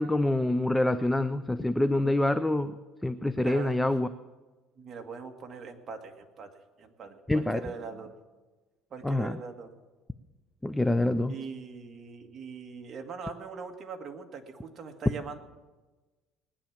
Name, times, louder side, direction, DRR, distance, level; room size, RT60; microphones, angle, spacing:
voice 1, 0.0-2.7 3.0-4.1 7.3-7.6 9.0-9.4 10.6-11.4, left 1 dB, 5° left, 11 dB, 0.4 m, -26 dB
voice 2, 3.4-3.8 4.8-6.5 6.8-8.1 8.9-9.7 11.3-15.4, right 5 dB, 30° right, 3 dB, 1.7 m, -41 dB
19.0 x 10.0 x 7.2 m, 1.2 s
cardioid pair, 160°, 0 cm